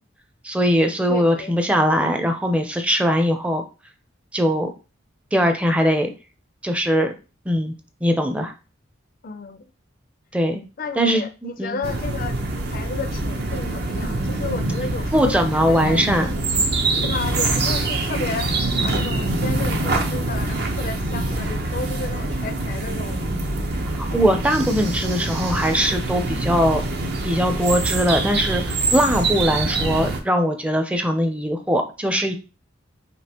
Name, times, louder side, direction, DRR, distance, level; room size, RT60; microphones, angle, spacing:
voice 1, 0.4-3.6 4.3-4.7 5.3-6.1 6.6-7.1 7.5-7.7 8.0-8.5 10.3-10.6 11.0-11.8 15.1-16.3 23.9-26.8 27.2-32.3, equal, 5° right, 0.5 m, -21 dB
voice 2, 1.1-1.6 9.2-9.7 10.8-12.4 12.7-16.1 16.9-18.5 18.8-23.2, left 4 dB, 45° left, 0.4 m, -32 dB
sound 1, 11.8-30.2, right 2 dB, 55° right, 0.7 m, -25 dB
5.2 x 2.8 x 2.9 m
head